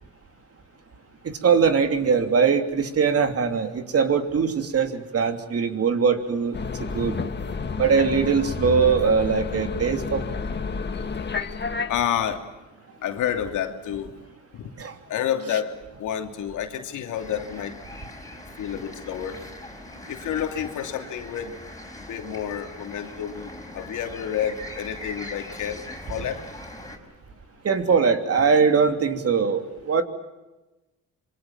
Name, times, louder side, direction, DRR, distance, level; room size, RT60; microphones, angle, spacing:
voice 1, 1.2-7.1 7.8-10.4 14.8-14.9 27.6-30.0, right 6 dB, 50° right, 7 dB, 3.1 m, -21 dB
sound 1, 6.5-12.0, left 5 dB, 35° left, 2.0 m, -30 dB
voice 2, 11.9-12.5 13.0-14.1 15.1-17.8 18.6-19.4 20.1-21.6 22.0-26.4, left 9 dB, 80° left, 5 dB, 2.9 m, -29 dB
sound 2, 17.1-27.0, left 1 dB, 10° left, 5.6 m, -41 dB
26.0 x 24.0 x 7.4 m, 1.1 s
cardioid pair, 90°, 30 cm